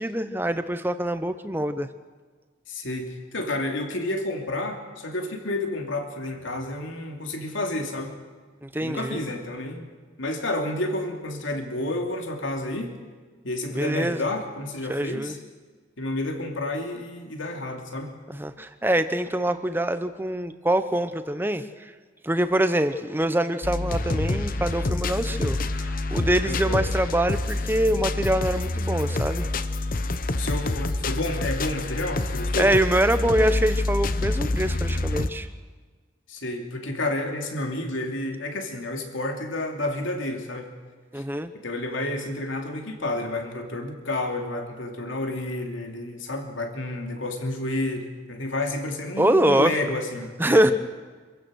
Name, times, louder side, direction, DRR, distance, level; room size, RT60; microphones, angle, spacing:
voice 1, 0.0-1.9 8.6-9.2 13.7-14.3 14.9-15.4 18.3-21.9 22.2-29.5 32.6-35.5 41.1-41.5 49.2-49.7 50.4-50.7, right 1 dB, 10° right, 10 dB, 0.9 m, -24 dB
voice 2, 2.7-8.1 8.8-9.9 10.2-13.0 13.4-15.4 16.0-18.1 26.4-26.8 30.3-32.7 36.3-40.7 41.2-41.3 41.5-50.7, left 1 dB, 80° left, 3 dB, 2.7 m, -30 dB
sound 1, 23.6-35.3, left 2 dB, 45° left, 0.9 m, -27 dB
27.0 x 15.5 x 6.4 m, 1.4 s
head